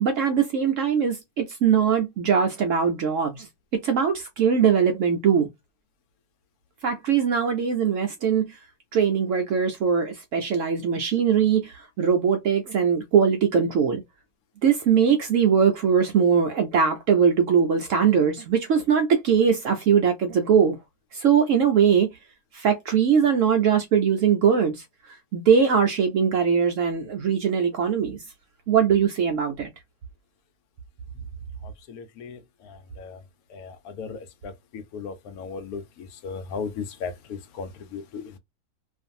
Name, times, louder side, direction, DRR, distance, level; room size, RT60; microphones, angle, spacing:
voice 1, 0.0-3.5 3.7-5.5 6.8-8.6 8.9-14.0 14.6-20.8 21.1-22.1 22.5-24.8 25.3-28.2 28.7-29.7, right 7 dB, 70° right, 0.8 m, -21 dB
voice 2, 34.9-35.8 36.2-36.7 37.0-37.1 37.6-37.7 37.9-38.0, left 5 dB, 75° left, 1.0 m, -33 dB
2.5 x 2.5 x 2.5 m
omnidirectional pair, 1.7 m